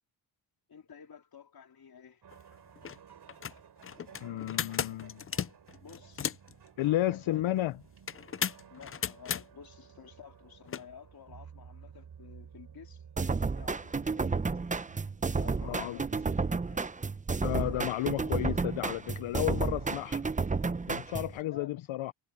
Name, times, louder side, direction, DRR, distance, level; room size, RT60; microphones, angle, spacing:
voice 1, 0.7-2.2 5.8-6.4 7.1-7.4 8.7-13.0 13.5-14.5 15.3-16.4 16.7-16.9 21.4-21.8, left 7 dB, 45° left, 3.9 m, -52 dB
sound 1, 2.2-16.4, right 7 dB, 55° right, 3.5 m, -54 dB
sound 2, 2.3-2.4 2.8-3.0 3.3-6.5 8.1-9.4 10.7-10.8, left 8 dB, 30° left, 0.5 m, -35 dB
voice 2, 4.2-5.2 6.8-7.7 15.6-16.0 17.4-20.2 20.9-22.1, left 15 dB, 75° left, 0.8 m, -32 dB
sound 3, 13.2-21.4, right 4 dB, 15° right, 0.7 m, -31 dB
cardioid pair, 85°, 48 cm